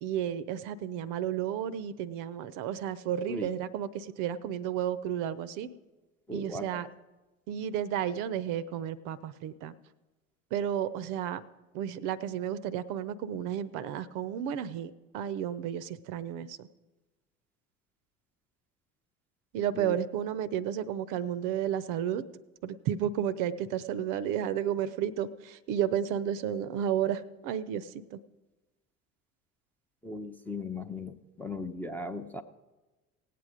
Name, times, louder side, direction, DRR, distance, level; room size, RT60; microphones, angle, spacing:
voice 1, 0.0-5.7 6.3-6.9 7.5-9.7 10.5-11.4 11.7-16.7 19.5-22.2 22.6-28.2, right 9 dB, 45° right, 16 dB, 0.6 m, -32 dB
voice 2, 6.3-6.8 19.7-20.0 30.0-32.4, left 2 dB, 5° left, 4 dB, 0.5 m, -38 dB
17.5 x 8.4 x 5.0 m, 1.2 s
figure-of-eight pair, 65°, 42 cm